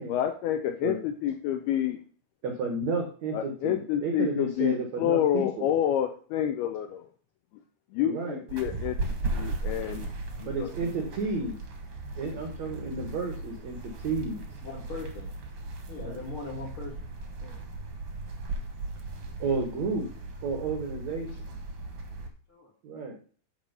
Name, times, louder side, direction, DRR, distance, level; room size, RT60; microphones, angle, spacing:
voice 1, 0.1-2.0 3.3-7.1 7.9-10.1 10.4-10.7, left 10 dB, 80° left, 6 dB, 2.3 m, -28 dB
voice 2, 2.4-5.7 8.0-8.4 10.4-11.6 12.2-14.4 16.0-16.2 19.4-20.1 20.4-21.5 22.8-23.2, right 4 dB, 85° right, 3 dB, 1.5 m, -32 dB
sound 1, 8.5-22.3, right 2 dB, 60° right, 1.5 m, -37 dB
voice 3, 14.6-15.3 15.9-16.9 17.4-17.6 22.5-22.7, left 4 dB, 55° left, 0 dB, 1.5 m, -40 dB
11.5 x 4.6 x 5.4 m, 0.43 s
omnidirectional pair, 5.2 m